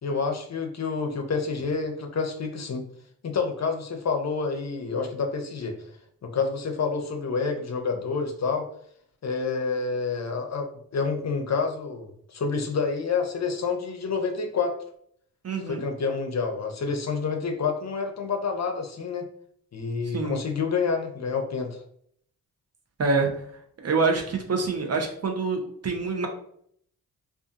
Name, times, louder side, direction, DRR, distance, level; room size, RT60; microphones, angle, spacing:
voice 1, 0.0-2.9 3.2-5.8 6.2-8.7 9.2-14.7 15.7-19.3 19.7-21.8, left 5 dB, 45° left, 3 dB, 0.6 m, -28 dB
voice 2, 15.4-15.8 20.0-20.4 23.0-23.3 23.8-26.3, right 4 dB, 40° right, 3 dB, 0.6 m, -26 dB
2.5 x 2.4 x 2.4 m, 0.65 s
supercardioid pair, 45°, 37 cm